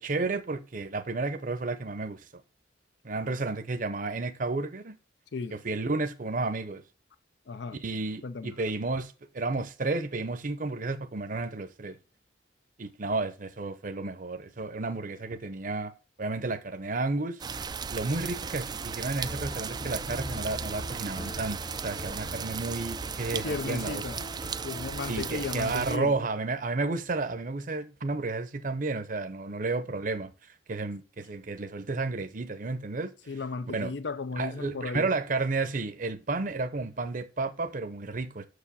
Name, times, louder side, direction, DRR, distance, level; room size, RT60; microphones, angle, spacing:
voice 1, 0.0-2.3 3.0-5.0 5.5-6.8 7.8-12.0 12.8-15.9 16.2-24.0 25.1-33.4 33.7-33.9 34.4-38.5, right 3 dB, 50° right, 0.7 m, -32 dB
voice 2, 7.5-7.8 8.2-8.5 23.4-24.2 24.6-26.2 33.3-35.1, left 4 dB, 70° left, 0.5 m, -35 dB
sound 1, 17.4-26.0, right 6 dB, 25° right, 0.3 m, -36 dB
sound 2, 19.2-25.5, left 1 dB, 35° left, 0.7 m, -43 dB
6.4 x 4.9 x 6.8 m
head